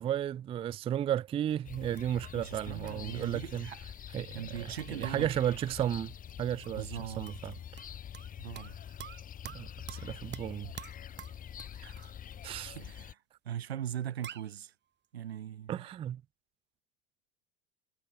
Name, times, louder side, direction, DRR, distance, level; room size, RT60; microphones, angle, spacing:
voice 1, 0.0-3.7 4.1-6.9 7.2-7.5 9.5-10.7 12.4-12.8 15.7-16.2, right 10 dB, 20° right, 0.4 m, -34 dB
sound 1, 1.3-2.6 2.9-6.0 6.3-6.4 6.6-8.3 8.6-12.4 12.6-12.7 13.0-13.1 13.6-13.7 13.9-14.0 14.2-14.6, right 10 dB, 35° right, 5.1 m, -48 dB
sound 2, 1.6-13.1, left 9 dB, 25° left, 1.0 m, -46 dB
voice 2, 2.3-3.8 4.0-5.3 6.7-7.3 8.4-8.8 11.8-12.2 12.7-14.7 15.1-15.9, right 10 dB, 80° right, 0.9 m, -40 dB
figure-of-eight pair, 75°, 31 cm